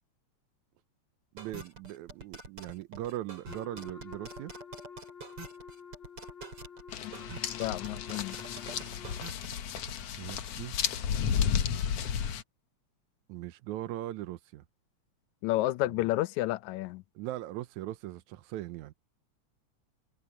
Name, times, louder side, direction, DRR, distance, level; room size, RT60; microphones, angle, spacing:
voice 1, 1.3-4.5 9.9-10.8 13.3-14.6 15.9-16.1 17.2-18.9, right 14 dB, 90° right, 2.1 m, -40 dB
sound 1, 1.4-9.9, right 3 dB, 50° right, 6.9 m, -46 dB
Wind instrument woodwind instrument, 3.5-9.2, left 6 dB, 45° left, 2.8 m, -49 dB
sound 2, 6.9-12.4, left 8 dB, 65° left, 2.1 m, -33 dB
voice 2, 7.6-8.4 15.4-17.0, left 16 dB, 80° left, 1.9 m, -30 dB
omnidirectional pair, 3.3 m